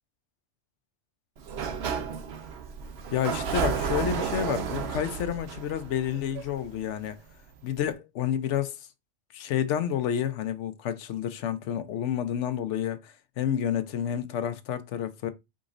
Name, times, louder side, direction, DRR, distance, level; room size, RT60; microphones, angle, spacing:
Sliding door, 1.4-7.0, right 6 dB, 65° right, 0.9 m, -32 dB
voice 1, 3.1-7.2 7.6-8.8 9.3-15.3, left 9 dB, 85° left, 0.9 m, -29 dB
5.2 x 3.9 x 2.5 m
omnidirectional pair, 1.2 m